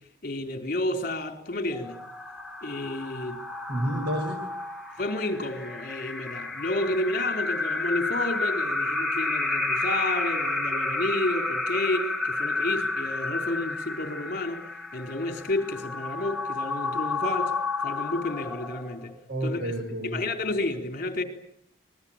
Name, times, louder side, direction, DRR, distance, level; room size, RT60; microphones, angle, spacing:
voice 1, 0.2-2.0 2.6-3.4 5.0-14.6 14.9-17.5 17.8-19.1 19.4-19.6 20.1-21.2, left 2 dB, 45° left, 4.1 m, -30 dB
sound 1, 1.7-19.1, left 3 dB, ahead, 3.0 m, -31 dB
voice 2, 3.7-4.4 19.3-20.2, equal, 60° right, 5.3 m, -29 dB
27.5 x 21.5 x 9.0 m
head